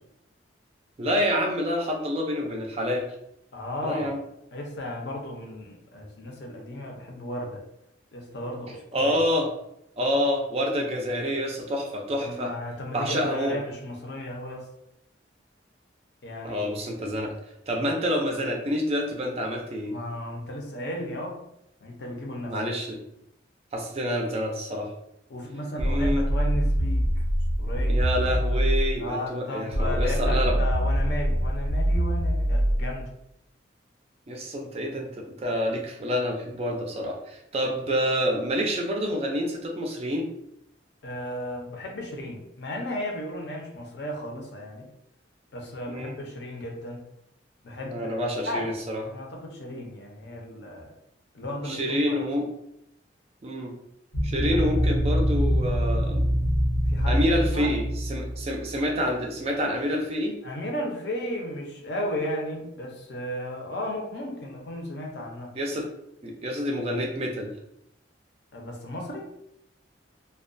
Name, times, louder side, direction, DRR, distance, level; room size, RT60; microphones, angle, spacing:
voice 1, 1.0-3.1 3.8-4.2 8.9-9.5 10.0-12.5 12.9-13.6 16.4-17.3 17.7-19.9 22.4-23.0 23.7-24.9 25.8-26.3 27.9-30.6 34.3-40.3 45.9-46.2 47.8-49.0 51.6-52.5 53.4-53.7 54.2-56.3 57.1-60.4 65.5-65.9 66.2-67.5, equal, 35° right, 1 dB, 0.4 m, -27 dB
voice 2, 3.5-4.2 4.5-7.6 8.1-9.1 12.2-14.7 16.2-17.0 19.9-21.4 21.8-22.6 25.3-27.1 27.6-28.0 29.0-33.1 41.0-44.9 45.5-47.0 47.6-48.7 49.1-50.9 51.3-51.8 52.0-52.2 54.4-54.6 56.9-57.7 60.4-65.5 68.5-69.3, left 1 dB, 60° left, 1 dB, 0.6 m, -34 dB
sound 1, 25.8-29.0 29.7-33.0, equal, 90° right, 0.5 m, -24 dB
sound 2, 54.1-58.8, equal, 90° left, 0.9 m, -24 dB
2.3 x 2.2 x 2.5 m, 0.80 s
head